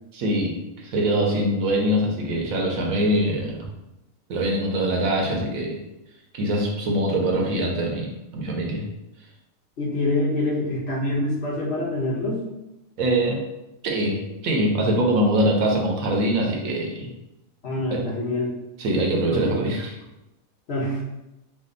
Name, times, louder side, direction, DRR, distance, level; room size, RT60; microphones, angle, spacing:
voice 1, 0.1-3.6 4.3-5.8 6.3-8.9 13.0-13.4 13.8-17.1 17.9-18.0 18.8-19.9, right 1 dB, 85° right, 0 dB, 1.2 m, -23 dB
voice 2, 9.8-12.4 17.6-18.5 19.3-19.6 20.7-21.0, left 1 dB, 50° left, -4 dB, 1.3 m, -25 dB
5.0 x 2.0 x 3.8 m, 0.93 s
omnidirectional pair, 1.4 m